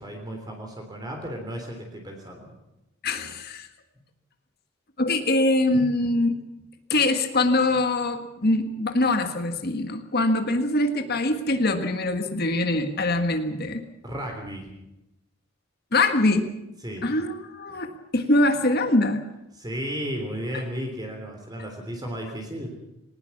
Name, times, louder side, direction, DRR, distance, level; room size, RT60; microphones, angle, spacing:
voice 1, 0.0-2.5 14.0-14.7 16.8-17.1 19.5-22.7, equal, 20° right, 2 dB, 3.5 m, -34 dB
voice 2, 3.0-3.7 5.0-6.4 6.9-13.8 15.9-16.5 17.0-19.2, left 2 dB, 50° left, 7 dB, 1.6 m, -23 dB
20.5 x 19.5 x 7.2 m, 0.90 s
head